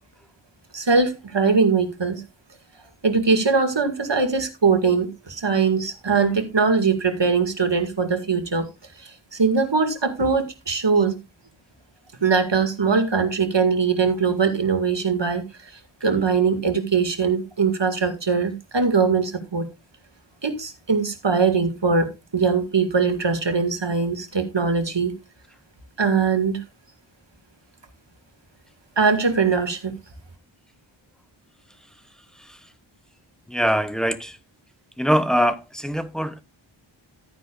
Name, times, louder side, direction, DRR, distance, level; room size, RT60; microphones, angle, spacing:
voice 1, 0.7-2.2 3.0-8.7 9.0-11.2 12.2-15.7 16.0-19.7 20.4-25.2 26.0-26.6 29.0-29.9, right 5 dB, 60° right, 2.1 m, -21 dB
voice 2, 33.5-34.4 35.0-36.4, equal, ahead, 1.1 m, -23 dB
13.5 x 9.6 x 2.4 m
wide cardioid pair, 45°, 48 cm